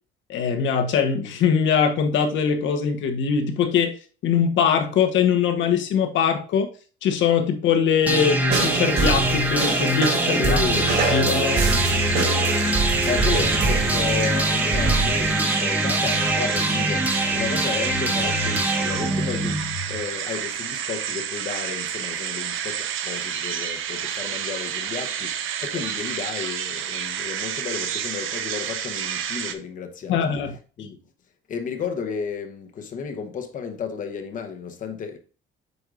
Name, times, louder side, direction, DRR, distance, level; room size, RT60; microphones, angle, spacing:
voice 1, 0.3-4.0 4.2-6.7 7.0-10.6 11.1-11.6 30.1-30.5, left 7 dB, 65° left, 1.1 m, -22 dB
sound 1, 8.1-20.0, right 1 dB, 5° right, 0.8 m, -24 dB
sound 2, 8.5-15.3, right 4 dB, 55° right, 3.7 m, -25 dB
voice 2, 10.3-10.8 11.7-30.4 30.8-31.0 31.5-35.2, left 6 dB, 40° left, 1.0 m, -33 dB
sound 3, 11.4-29.5, right 9 dB, 70° right, 0.8 m, -30 dB
8.0 x 5.3 x 2.5 m
cardioid pair, 180°, 21 cm